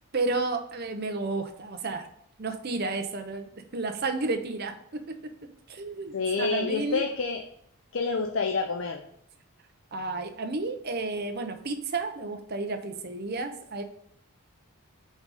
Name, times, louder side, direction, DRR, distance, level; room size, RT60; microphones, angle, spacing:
voice 1, 0.1-2.1 2.4-5.3 5.7-7.1 9.9-13.8, right 3 dB, 45° right, 6 dB, 0.7 m, -32 dB
voice 2, 6.1-7.4 7.9-9.0, left 4 dB, 60° left, 4 dB, 0.5 m, -28 dB
5.1 x 3.9 x 4.8 m, 0.70 s
head